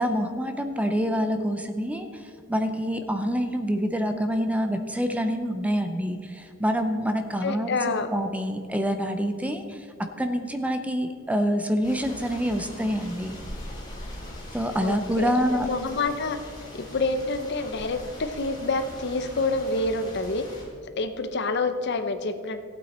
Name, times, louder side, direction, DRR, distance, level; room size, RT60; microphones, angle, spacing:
voice 1, 0.0-13.4 14.5-15.7, equal, 5° right, 7 dB, 0.6 m, -27 dB
voice 2, 7.4-8.1 14.8-16.4 16.7-20.4 21.0-22.6, left 3 dB, 55° left, 10 dB, 0.7 m, -27 dB
sound 1, 11.8-20.6, left 1 dB, 20° left, 3.2 m, -41 dB
15.0 x 8.8 x 4.3 m, 2.2 s
head